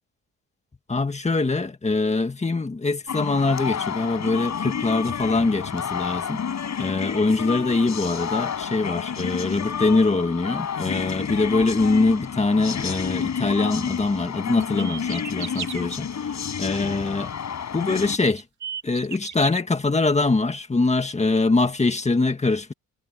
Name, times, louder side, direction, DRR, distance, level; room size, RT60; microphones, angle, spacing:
voice 1, 0.9-6.4 6.8-17.3 17.7-18.4 18.8-22.7, left 3 dB, 20° left, 1.8 m, -23 dB
sound 1, 3.1-18.2, left 7 dB, 45° left, 6.0 m, -30 dB
sound 2, 14.6-15.8 17.5-17.6 18.2-19.6, right 7 dB, 50° right, 2.3 m, -35 dB
cardioid pair, 130°, 38 cm